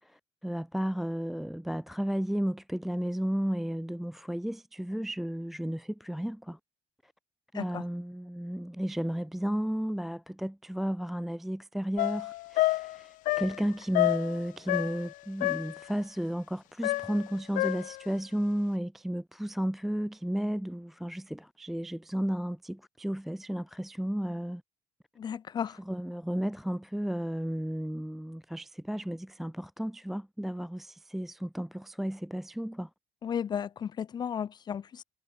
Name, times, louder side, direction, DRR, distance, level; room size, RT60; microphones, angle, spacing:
voice 1, 0.0-6.6 7.0-7.1 7.5-24.6 25.8-32.9, equal, ahead, 0.3 m, -33 dB
sound 1, 12.0-15.1 15.4-15.9 16.8-18.1, left 18 dB, 80° left, 1.0 m, -29 dB
voice 2, 25.2-25.8 33.2-35.0, left 8 dB, 30° left, 1.2 m, -34 dB
cardioid pair, 165°, 14 cm